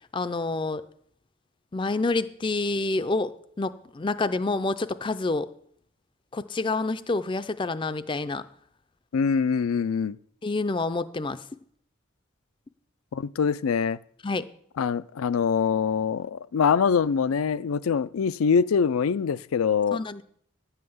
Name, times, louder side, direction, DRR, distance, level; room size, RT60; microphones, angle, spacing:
voice 1, 0.1-0.8 1.7-3.3 3.6-5.5 6.3-8.4 10.4-11.4 14.2-14.4 19.9-20.2, left 3 dB, 25° left, 0.4 m, -28 dB
voice 2, 9.1-10.2 13.1-14.0 14.8-20.0, left 6 dB, 85° left, 0.4 m, -24 dB
11.0 x 5.7 x 7.9 m
head